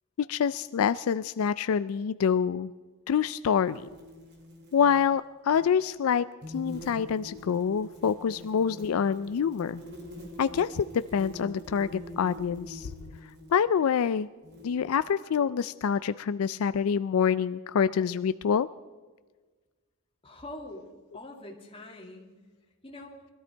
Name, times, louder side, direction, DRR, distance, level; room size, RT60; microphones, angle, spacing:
voice 1, 0.2-2.7 3.1-3.9 4.7-6.3 6.5-9.8 10.4-12.9 13.5-14.3 14.6-18.7, left 7 dB, 80° left, 14 dB, 0.4 m, -26 dB
sound 1, 3.6-5.1 5.5-5.7 6.4-13.6 14.4-15.0, left 1 dB, 50° right, 2.8 m, -45 dB
voice 2, 20.2-20.9 21.1-22.4 22.8-23.1, left 1 dB, 25° left, 0 dB, 2.4 m, -44 dB
21.5 x 13.5 x 4.5 m, 1.4 s
head